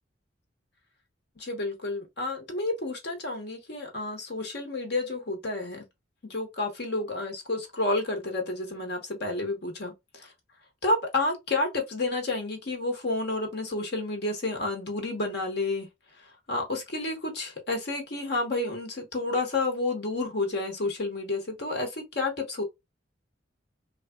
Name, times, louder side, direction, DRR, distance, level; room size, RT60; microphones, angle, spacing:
voice 1, 1.4-5.8 6.3-9.9 10.8-15.9 16.5-22.6, left 2 dB, 55° left, 1.1 m, -30 dB
3.4 x 2.4 x 2.2 m
head